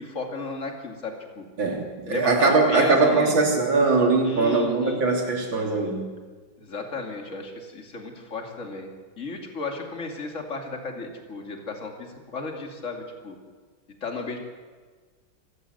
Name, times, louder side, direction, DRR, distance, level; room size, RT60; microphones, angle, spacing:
voice 1, 0.0-1.4 2.1-3.3 4.2-5.0 6.6-8.9 9.2-13.4 14.0-14.4, left 3 dB, 40° left, 3 dB, 2.9 m, -34 dB
voice 2, 1.6-6.0, right 3 dB, 75° right, 1 dB, 3.8 m, -21 dB
26.0 x 15.0 x 8.0 m, 1.4 s
omnidirectional pair, 2.1 m